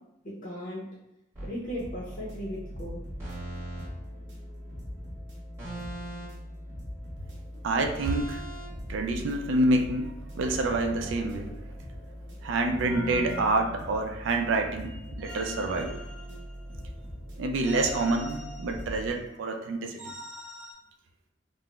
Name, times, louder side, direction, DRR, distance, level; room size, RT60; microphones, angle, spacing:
voice 1, 0.2-0.8 1.4-3.0, equal, 45° left, -6 dB, 0.6 m, -37 dB
sound 1, 1.3-1.6 3.2-3.9 5.6-6.5 8.0-8.7 10.4-11.8 12.8-14.4 15.2-16.8 17.6-19.1 20.0-20.7, right 1 dB, 15° right, 1.1 m, -41 dB
sound 2, 1.6-19.1, equal, 70° right, 0.8 m, -41 dB
voice 2, 7.6-8.4 8.9-11.5 12.4-15.9 17.4-20.2, right 2 dB, 85° right, 4 dB, 0.4 m, -27 dB
3.6 x 2.0 x 2.3 m, 0.84 s
head